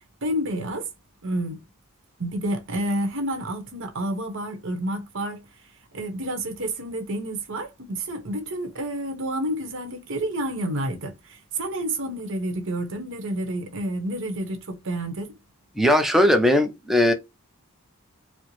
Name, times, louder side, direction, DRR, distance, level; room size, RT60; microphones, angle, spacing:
voice 1, 0.2-0.9 1.2-1.6 2.2-5.4 5.9-15.3, right 1 dB, 60° right, 1.1 m, -29 dB
voice 2, 15.8-17.1, left 1 dB, ahead, 0.5 m, -19 dB
4.5 x 2.1 x 2.9 m
head